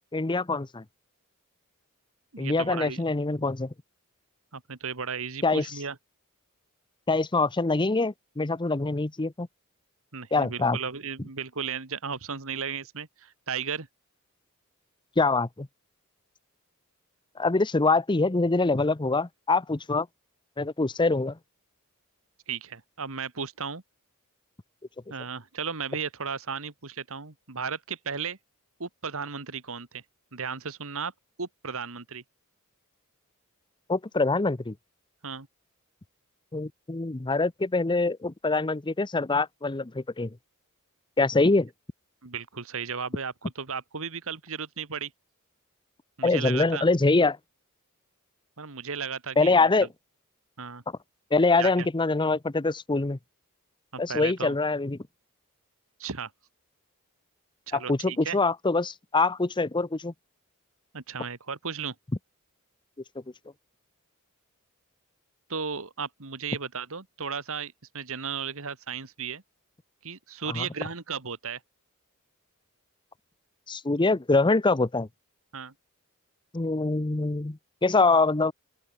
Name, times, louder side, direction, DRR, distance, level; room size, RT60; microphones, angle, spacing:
voice 1, 0.1-0.8 2.4-3.7 5.4-5.7 7.1-9.5 10.3-10.8 15.2-15.7 17.4-20.1 20.6-21.4 33.9-34.7 36.5-40.4 41.2-41.7 46.2-47.4 49.4-49.9 51.3-53.2 54.0-55.0 57.7-60.1 70.5-70.7 73.7-75.1 76.5-78.5, left 3 dB, 20° left, 0.7 m, -24 dB
voice 2, 2.3-3.1 4.5-6.0 10.1-13.9 22.5-23.8 25.1-28.4 28.8-30.0 30.3-31.1 31.4-32.2 35.2-35.5 42.2-45.1 46.2-46.8 48.6-49.7 50.6-50.8 51.6-51.9 53.9-54.6 56.0-56.3 57.7-58.4 60.9-62.0 65.5-69.4 70.0-71.6 75.5-75.7, right 6 dB, 65° right, 2.0 m, -35 dB
open air
head